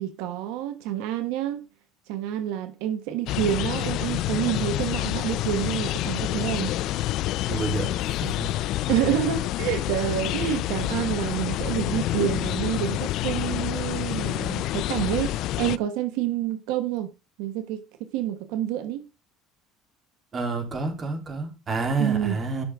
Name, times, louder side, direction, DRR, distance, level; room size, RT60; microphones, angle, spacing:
voice 1, 0.0-1.6 2.1-6.7 8.9-17.1 17.4-17.8 18.1-19.0 22.0-22.4, right 11 dB, 80° right, 1.2 m, -28 dB
sound 1, 3.3-15.8, left 15 dB, 55° left, 0.5 m, -28 dB
voice 2, 7.5-8.5 20.3-22.6, right 3 dB, 30° right, 3.4 m, -29 dB
13.0 x 6.3 x 3.6 m
cardioid pair, 145°, 0 cm